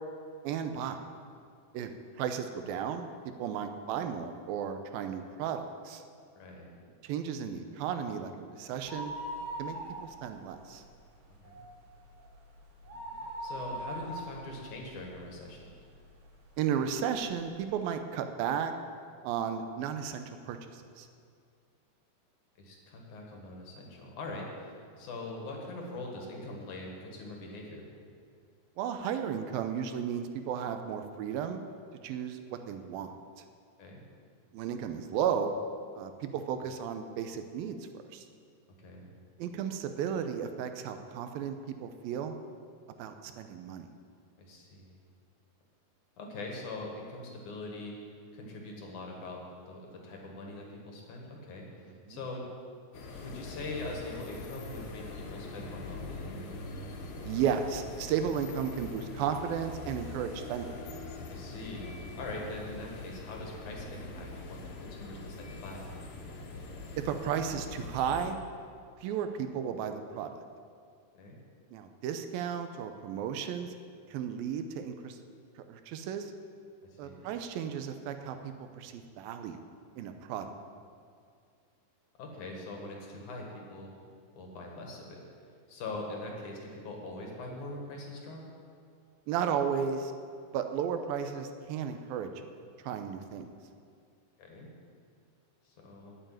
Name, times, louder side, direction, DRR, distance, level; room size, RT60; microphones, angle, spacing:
voice 1, 0.4-1.0 1.7-1.9 2.2-3.1 3.4-6.0 7.0-9.1 9.6-10.8 16.6-18.7 19.2-21.1 28.8-31.6 32.0-33.1 34.5-35.5 35.9-37.8 38.1-38.2 39.4-42.4 43.0-43.9 52.1-52.2 57.2-60.8 67.0-68.4 69.0-70.4 71.7-73.7 74.1-75.2 75.7-76.3 77.0-79.6 80.0-80.5 89.3-90.1 90.5-92.3 92.8-93.5, right 8 dB, 80° right, 7 dB, 2.5 m, -34 dB
voice 2, 6.3-6.7 11.4-11.6 13.4-15.7 22.6-27.9 33.8-34.0 38.8-39.1 44.4-44.9 46.2-48.0 48.3-52.4 53.2-56.4 61.3-65.8 71.1-71.4 76.9-77.2 80.4-80.6 82.2-84.0 84.3-85.3 85.7-88.4 94.4-94.7 95.6-96.2, left 2 dB, 60° left, 0 dB, 2.9 m, -42 dB
sound 1, 8.9-10.4 10.7-10.8 11.3-15.7 16.2-16.3 17.1-17.2 17.4-17.5, right 1 dB, 65° right, 3.7 m, -40 dB
sound 2, 52.9-68.3, left 2 dB, 75° left, 3.1 m, -43 dB
9.0 x 8.9 x 9.1 m, 2.2 s
omnidirectional pair, 4.3 m